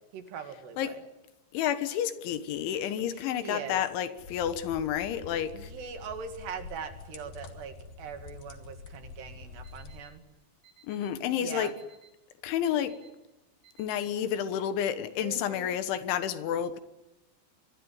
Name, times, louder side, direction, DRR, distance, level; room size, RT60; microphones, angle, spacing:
voice 1, 0.1-1.0 3.1-3.8 5.5-10.2 11.4-11.7 15.2-15.8, right 6 dB, 60° right, 3.9 m, -41 dB
voice 2, 1.5-5.7 10.9-11.7 12.4-13.0 13.8-16.8, left 9 dB, 75° left, 3.5 m, -30 dB
sound 1, 4.2-10.0, left 4 dB, 50° left, 3.4 m, -47 dB
Alarm, 9.6-10.1 10.6-11.1 11.6-12.1 12.6-13.1 13.6-14.1, right 8 dB, 80° right, 7.1 m, -58 dB
25.0 x 22.0 x 9.6 m
omnidirectional pair, 5.8 m